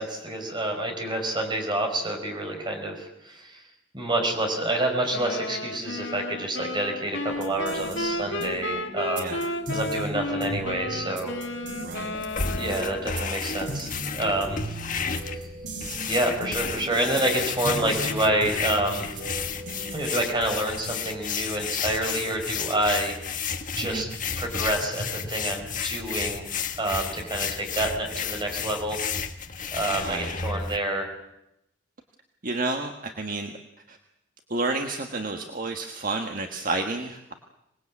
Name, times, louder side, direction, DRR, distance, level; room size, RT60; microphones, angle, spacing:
voice 1, 0.0-3.6 3.9-9.4 9.7-11.4 12.5-14.8 16.1-19.2 19.9-23.5 23.7-24.1 24.4-29.0 29.7-31.1, right 1 dB, 25° right, 3 dB, 5.0 m, -28 dB
sound 1, 5.1-13.5, left 1 dB, 70° left, 2.2 m, -33 dB
sound 2, 7.3-20.7, right 1 dB, 80° right, 4.9 m, -38 dB
voice 2, 11.8-12.2 23.8-24.1 30.0-30.4 32.4-33.5 33.9-34.0 34.5-37.3, right 3 dB, 50° right, 4 dB, 1.5 m, -30 dB
sound 3, 12.1-30.8, left 6 dB, 45° left, 1.6 m, -32 dB
26.0 x 20.0 x 8.5 m, 0.87 s
head